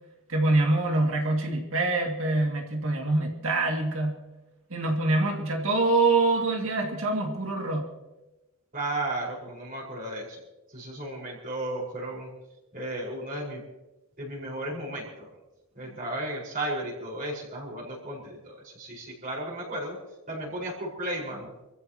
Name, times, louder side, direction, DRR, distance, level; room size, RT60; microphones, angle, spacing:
voice 1, 0.3-4.2 4.7-7.9 15.8-15.9, right 2 dB, 60° right, 1 dB, 2.4 m, -25 dB
voice 2, 8.7-10.4 10.7-12.3 12.7-13.6 14.2-15.3 15.7-20.0 20.3-21.5, right 1 dB, 40° right, -4 dB, 5.1 m, -34 dB
26.5 x 15.0 x 3.0 m, 1.0 s
head